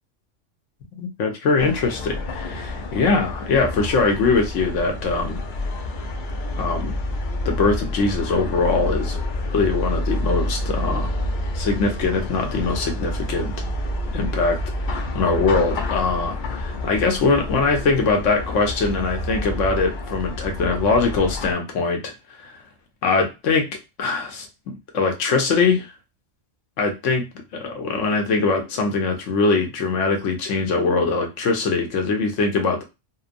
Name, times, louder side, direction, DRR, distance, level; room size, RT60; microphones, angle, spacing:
voice 1, 1.0-5.4 6.6-6.9 7.4-9.2 9.5-11.1 11.5-13.5 14.1-14.6 14.9-22.1 22.4-22.5 23.0-23.7 24.0-25.9 26.8-27.2 27.5-32.8, left 4 dB, 75° left, 3 dB, 1.0 m, -22 dB
sound 1, 1.6-21.5, left 1 dB, 55° left, 0.5 m, -28 dB
2.8 x 2.0 x 2.4 m, 0.25 s
omnidirectional pair, 1.3 m